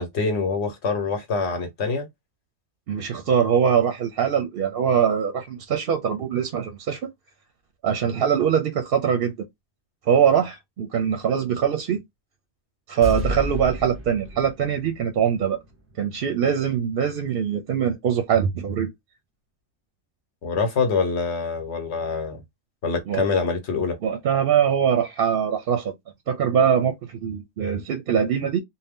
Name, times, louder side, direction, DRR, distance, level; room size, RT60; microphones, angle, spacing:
voice 1, 0.0-2.1 20.4-22.4 22.8-24.0, left 4 dB, 70° left, 1.1 m, -25 dB
voice 2, 2.9-7.1 7.8-9.3 10.1-12.0 12.9-15.6 16.0-18.9 23.1-23.2 24.0-25.9 26.3-28.6, right 8 dB, 60° right, 0.7 m, -22 dB
sound 1, 13.0-16.2 16.5-16.6, equal, 15° right, 0.6 m, -32 dB
2.7 x 2.1 x 3.4 m
omnidirectional pair, 1.2 m